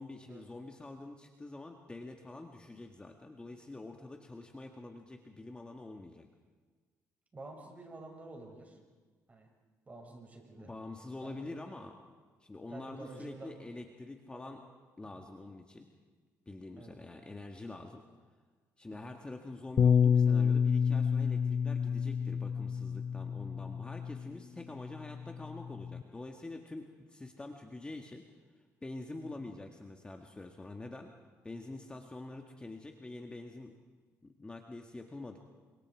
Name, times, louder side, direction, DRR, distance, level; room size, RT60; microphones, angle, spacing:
voice 1, 0.0-6.3 10.6-12.0 12.4-14.6 15.0-15.9 16.5-18.0 18.8-28.2 28.8-31.1 31.4-33.7 34.2-35.4, left 2 dB, 15° left, 3 dB, 1.8 m, -46 dB
voice 2, 7.3-8.8 9.3-9.5 9.9-10.7 11.2-11.5 12.7-13.5 14.3-14.5 15.1-15.2 16.8-17.0 18.9-19.2 29.2-29.5, right 2 dB, 25° right, 1 dB, 6.4 m, -49 dB
Bass guitar, 19.8-24.3 25.1-26.0, left 7 dB, 40° left, 0.6 m, -29 dB
29.0 x 25.5 x 4.8 m, 1.4 s
cardioid pair, 100°, 6 cm